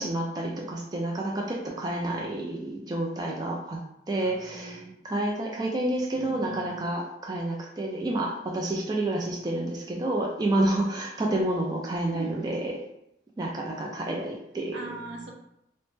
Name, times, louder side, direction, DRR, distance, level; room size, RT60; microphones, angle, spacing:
voice 1, 0.0-3.8 4.1-12.8 13.4-14.8, right 1 dB, 20° right, -1 dB, 0.3 m, -29 dB
voice 2, 4.2-5.0 6.1-6.8 9.2-9.4 12.1-12.5 14.7-15.3, right 2 dB, 85° right, 1 dB, 0.6 m, -40 dB
3.0 x 2.1 x 3.2 m, 0.81 s
head